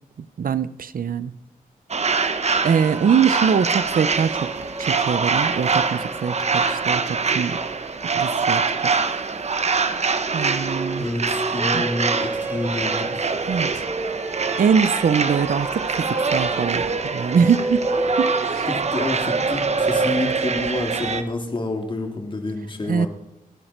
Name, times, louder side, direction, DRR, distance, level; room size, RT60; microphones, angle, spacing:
voice 1, 0.4-1.3 2.2-2.3 2.6-4.5 4.8-7.6 8.1-9.0 10.3-11.1 11.7-11.8 13.5-13.7 14.6-17.8 18.2-18.7 22.9-23.1, right 7 dB, 75° right, 15 dB, 0.8 m, -23 dB
sound 1, 1.9-21.2, right 4 dB, 45° right, 1.2 m, -24 dB
sound 2, 2.5-18.4, right 1 dB, 10° right, 0.8 m, -33 dB
voice 2, 11.0-13.1 18.7-23.1, left 2 dB, 35° left, 3 dB, 3.2 m, -28 dB
29.0 x 11.0 x 4.6 m, 0.79 s
wide cardioid pair, 110°, 15 cm